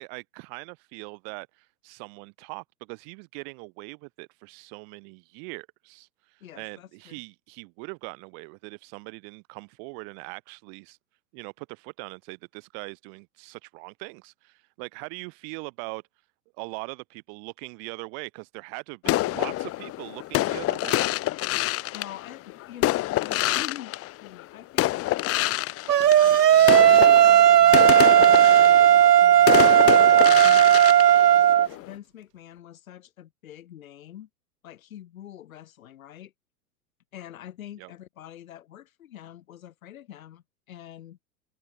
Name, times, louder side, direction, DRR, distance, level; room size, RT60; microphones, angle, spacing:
voice 1, 0.0-6.1 6.6-11.0 11.3-16.0 16.6-21.2 37.8-37.9, right 40 dB or more, 40° right, 3.3 m, -41 dB
voice 2, 6.4-7.2 21.9-23.9 24.2-25.0 26.1-26.4 26.8-30.7 31.8-34.3 34.6-36.3 37.1-41.2, left 11 dB, 60° left, 7.5 m, -45 dB
sound 1, 19.0-24.4 24.8-31.9, left 16 dB, 30° left, 2.4 m, -27 dB
sound 2, 25.9-31.7, right 11 dB, 80° right, 0.6 m, -15 dB
figure-of-eight pair, 100°, 47 cm